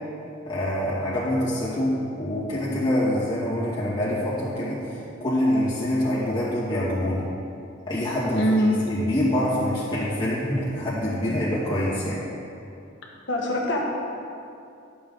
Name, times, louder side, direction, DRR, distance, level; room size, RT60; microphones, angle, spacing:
voice 1, 0.4-7.2 7.9-8.4 8.8-12.3, left 1 dB, 25° left, -10 dB, 2.4 m, -25 dB
voice 2, 8.3-8.8 13.3-13.8, equal, 65° left, -1 dB, 1.5 m, -22 dB
12.0 x 7.2 x 3.9 m, 2.6 s
head